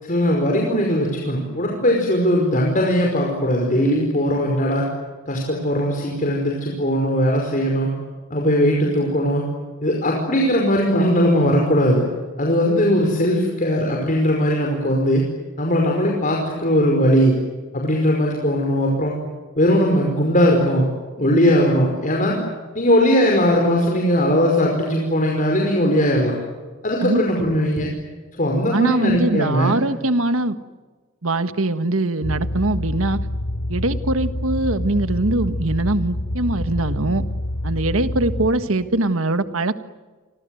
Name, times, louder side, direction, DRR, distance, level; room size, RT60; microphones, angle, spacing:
voice 1, 0.0-4.9 5.3-7.9 8.3-9.4 9.8-12.0 12.4-15.2 15.6-17.4 17.7-19.1 19.6-20.9 21.2-22.4 22.8-26.4 26.8-27.9 28.4-29.7, equal, 40° left, 0 dB, 5.3 m, -19 dB
voice 2, 28.7-30.6 31.2-33.2 33.7-37.2 37.6-39.8, right 2 dB, 75° right, 11 dB, 1.6 m, -22 dB
sound 1, 32.2-38.5, left 1 dB, 80° left, 4.5 m, -27 dB
29.0 x 25.0 x 7.9 m, 1.4 s
head